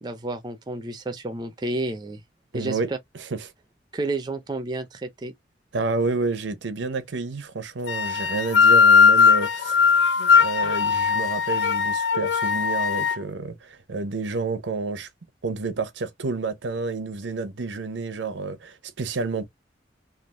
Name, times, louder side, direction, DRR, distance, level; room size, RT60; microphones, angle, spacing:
voice 1, 0.0-2.2 2.5-3.0 3.9-5.3, right 2 dB, 25° right, 0.4 m, -30 dB
voice 2, 2.5-2.9 3.2-3.5 5.7-9.9 10.4-15.1 15.4-19.4, right 3 dB, 85° right, 0.7 m, -29 dB
sound 1, 7.9-13.2, left 6 dB, 75° left, 0.4 m, -19 dB
3.3 x 2.4 x 2.4 m
head